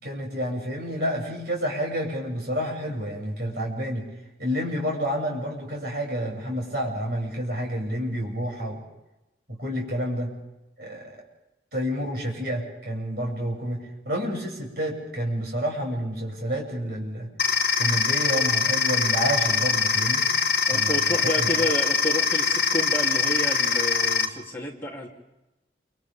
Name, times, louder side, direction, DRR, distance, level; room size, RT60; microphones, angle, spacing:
voice 1, 0.0-4.1 4.4-8.8 9.5-10.3 10.8-11.2 11.7-17.3 17.8-20.3 20.7-21.0 21.4-21.5, equal, 60° right, -2 dB, 7.2 m, -29 dB
sound 1, 17.4-24.3, left 5 dB, 60° left, 1.4 m, -23 dB
voice 2, 20.7-25.1, left 1 dB, 15° left, -4 dB, 3.2 m, -30 dB
29.0 x 26.5 x 3.6 m, 0.97 s
head